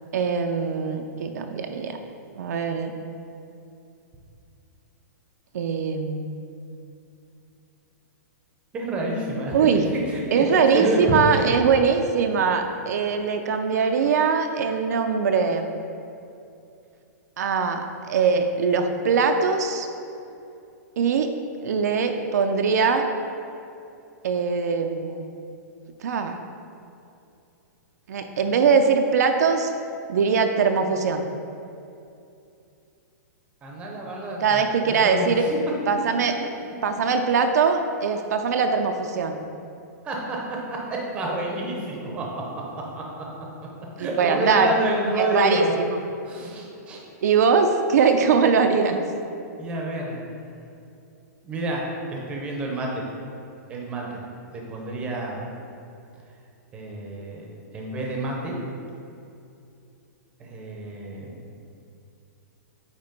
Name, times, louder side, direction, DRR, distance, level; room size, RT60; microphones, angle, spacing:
voice 1, 0.1-2.0 2.4-2.9 5.5-6.3 9.5-9.9 10.3-15.7 17.4-19.9 21.0-21.3 21.6-23.0 24.2-25.2 26.0-26.4 28.1-29.7 30.1-31.3 34.4-35.4 35.9-36.3 36.8-39.4 44.0-44.7 45.2-46.0 47.2-49.0, right 5 dB, 65° right, 5 dB, 0.5 m, -22 dB
voice 2, 8.7-11.4 33.6-34.6 35.0-35.6 40.0-40.4 40.9-42.4 42.9-43.0 44.0-45.7 46.3-47.0 49.6-50.3 51.4-51.8 52.1-53.0 53.7-54.2 54.5-55.4 56.7-57.4 57.7-58.6 60.4-61.3, right 1 dB, 10° right, -2 dB, 0.7 m, -28 dB
8.7 x 2.9 x 5.2 m, 2.6 s
hypercardioid pair, 175°, 10 cm